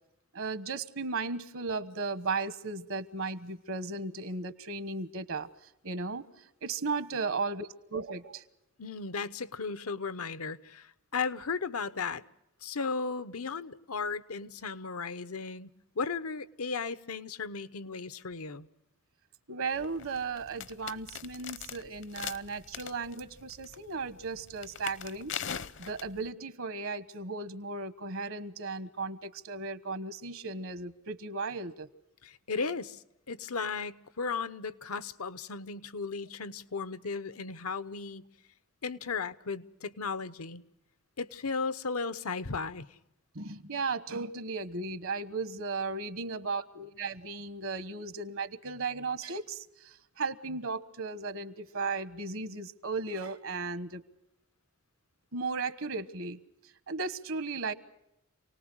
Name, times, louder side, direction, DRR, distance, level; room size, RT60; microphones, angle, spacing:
voice 1, 0.3-5.5 5.8-6.3 6.6-8.4 19.5-25.3 25.8-31.9 43.3-49.6 50.2-54.0 55.3-56.4 56.9-57.7, right 4 dB, 70° right, 14 dB, 1.3 m, -35 dB
voice 2, 8.8-12.2 12.6-15.7 15.9-18.7 32.2-38.2 38.8-40.6 41.2-42.9, left 4 dB, 90° left, 14 dB, 1.0 m, -35 dB
sound 1, 19.7-26.3, left 8 dB, 60° left, 0.8 m, -42 dB
28.0 x 19.0 x 6.2 m, 0.85 s
head